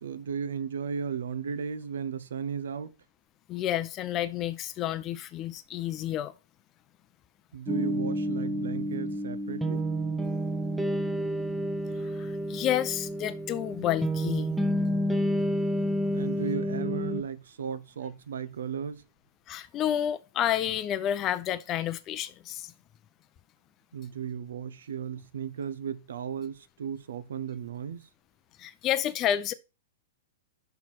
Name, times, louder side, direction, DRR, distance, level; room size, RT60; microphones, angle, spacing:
voice 1, 0.0-3.0 7.5-9.9 16.1-19.0 23.9-28.1, right 7 dB, 70° right, 0.8 m, -35 dB
voice 2, 3.5-6.3 12.0-14.6 19.5-22.7 28.6-29.5, left 11 dB, 30° left, 0.6 m, -30 dB
sound 1, 7.7-17.2, equal, 5° right, 0.9 m, -30 dB
5.8 x 5.8 x 4.4 m
hypercardioid pair, 110°, 0 cm